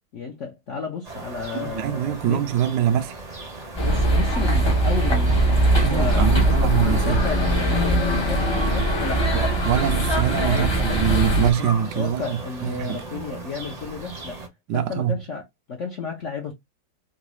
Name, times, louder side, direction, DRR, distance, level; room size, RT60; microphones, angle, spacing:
voice 1, 0.1-2.4 3.8-5.4 5.9-9.3 10.5-11.2 11.6-11.7 11.9-14.4 14.7-16.5, left 5 dB, 65° left, 0.7 m, -32 dB
sound 1, 1.0-14.5, right 2 dB, 40° right, 0.6 m, -37 dB
voice 2, 1.5-3.2 5.8-7.2 9.3-13.0 14.7-15.2, right 10 dB, 75° right, 1.0 m, -24 dB
sound 2, 3.8-11.5, right 1 dB, 30° left, 0.4 m, -21 dB
3.9 x 2.3 x 3.0 m
omnidirectional pair, 2.2 m